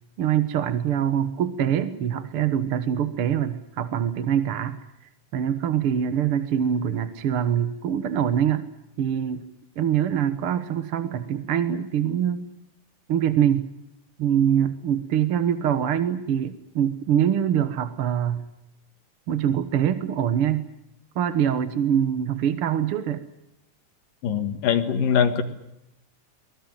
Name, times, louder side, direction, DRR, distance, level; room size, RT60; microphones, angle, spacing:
voice 1, 0.2-4.8 5.3-8.6 9.0-9.5 9.8-12.5 13.1-13.7 14.2-18.4 19.3-20.7 21.2-23.3, right 9 dB, 55° right, 12 dB, 1.7 m, -24 dB
voice 2, 24.2-25.4, left 7 dB, 90° left, 8 dB, 3.4 m, -22 dB
24.5 x 20.5 x 9.1 m, 0.85 s
omnidirectional pair, 3.8 m